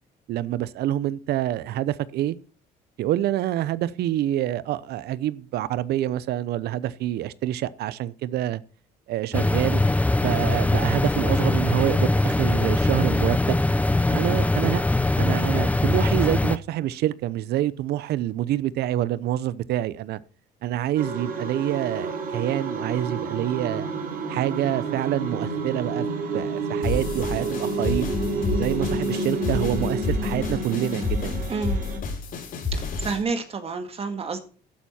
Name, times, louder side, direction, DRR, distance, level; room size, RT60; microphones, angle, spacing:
voice 1, 0.3-2.4 3.0-8.6 9.1-9.8 10.2-13.6 14.1-14.8 15.2-20.2 20.6-23.9 24.3-26.1 26.3-28.1 28.6-31.3, right 13 dB, 75° right, 0.8 m, -27 dB
sound 1, 9.3-16.6, left 2 dB, 10° left, 0.6 m, -22 dB
sound 2, 21.0-32.0, right 2 dB, 55° right, 4.1 m, -29 dB
sound 3, 26.8-33.2, left 3 dB, 60° left, 5.6 m, -30 dB
voice 2, 31.5-31.8 32.7-34.4, right 4 dB, 35° right, 1.8 m, -29 dB
11.5 x 10.5 x 4.4 m
cardioid pair, 110°, 17 cm